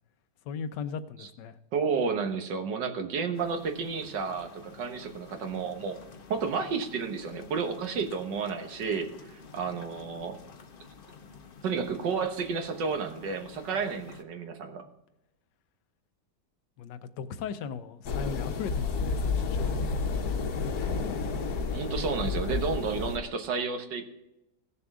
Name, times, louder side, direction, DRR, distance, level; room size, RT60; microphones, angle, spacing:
voice 1, 0.5-1.6 16.8-19.9, left 6 dB, 80° left, 11 dB, 1.3 m, -37 dB
voice 2, 1.7-6.0 6.3-10.4 11.6-14.8 21.7-24.0, right 5 dB, 80° right, 6 dB, 1.8 m, -31 dB
sound 1, 3.3-14.2, left 5 dB, 45° left, 0.7 m, -50 dB
sound 2, 18.1-23.2, left 4 dB, 65° left, 1.4 m, -30 dB
17.0 x 6.9 x 3.6 m, 0.90 s
omnidirectional pair, 1.9 m